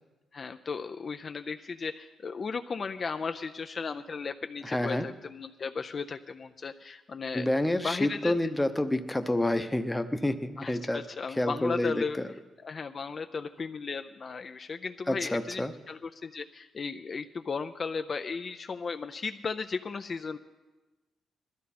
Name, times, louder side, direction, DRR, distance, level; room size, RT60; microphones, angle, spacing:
voice 1, 0.3-8.3 10.6-12.2 12.6-20.4, left 5 dB, 35° left, 8 dB, 0.4 m, -35 dB
voice 2, 4.6-5.1 7.3-11.0 11.4-12.2 15.1-15.7, left 1 dB, 10° left, 8 dB, 0.8 m, -28 dB
20.5 x 13.5 x 4.2 m, 1.1 s
cardioid pair, 125°, 0 cm